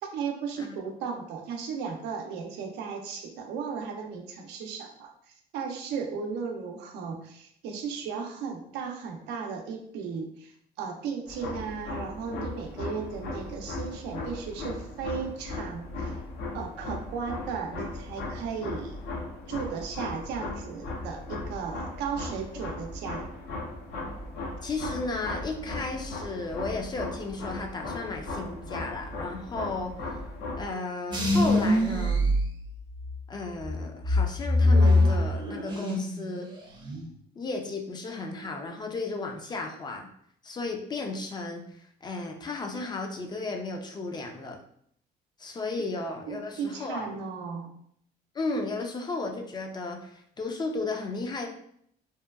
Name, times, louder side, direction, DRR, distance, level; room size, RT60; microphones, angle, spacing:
voice 1, 0.1-10.5 10.8-16.1 16.5-19.0 19.5-23.3 46.3-47.7, right 6 dB, 85° right, 2 dB, 0.5 m, -35 dB
sound 1, 11.3-30.7, left 2 dB, 70° left, 0.6 m, -37 dB
voice 2, 24.6-30.2 30.6-32.3 33.3-36.5 37.4-40.1 40.4-41.7 42.0-44.6 45.4-47.2 48.3-51.5, left 3 dB, 25° left, 3 dB, 0.4 m, -34 dB
sound 2, 31.1-33.2 33.6-36.2 36.5-37.1, left 1 dB, 25° right, 0.6 m, -23 dB
2.7 x 2.2 x 2.3 m, 0.68 s
cardioid pair, 110°, 17 cm